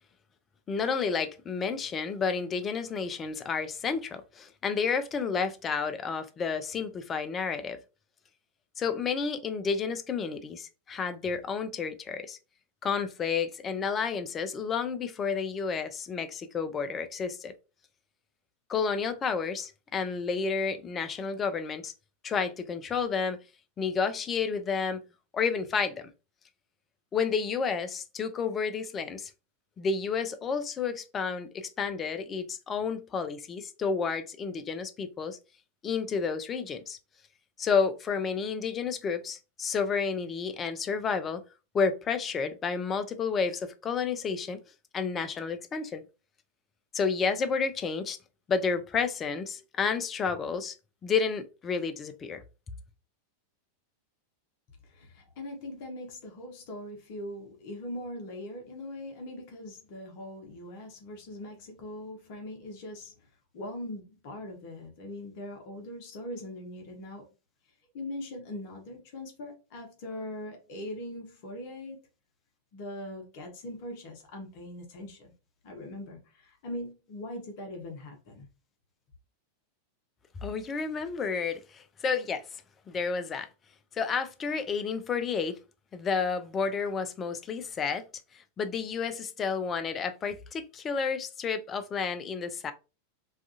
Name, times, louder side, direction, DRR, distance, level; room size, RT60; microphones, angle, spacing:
voice 1, 0.7-7.8 8.8-12.4 12.8-17.5 18.7-21.9 22.2-23.4 23.8-25.0 25.3-26.1 27.1-29.3 29.8-35.4 35.8-37.0 37.6-41.4 41.7-44.6 44.9-46.0 46.9-48.2 48.5-50.7 51.0-52.4 80.4-82.4 82.9-83.5 83.9-85.6 85.9-88.1 88.3-92.7, left 5 dB, 25° left, 0.4 m, -31 dB
voice 2, 54.8-63.3 63.5-67.3 67.9-72.0 72.7-75.3 75.6-78.5, left 1 dB, 45° left, 0.7 m, -41 dB
2.5 x 2.3 x 2.5 m
figure-of-eight pair, 90°, 0 cm